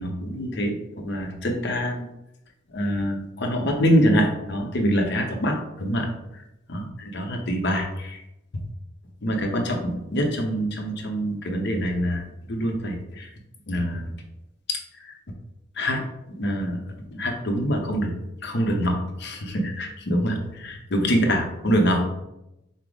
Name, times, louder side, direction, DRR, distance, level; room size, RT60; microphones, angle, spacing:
voice 1, 0.0-2.1 2.7-6.1 6.3-6.4 6.7-8.2 9.2-12.2 12.5-13.3 13.7-14.1 14.7-15.1 15.8-16.0 16.4-16.8 17.1-18.1 18.4-22.0, equal, 65° left, 2 dB, 0.8 m, -25 dB
5.5 x 2.0 x 4.8 m, 0.89 s
head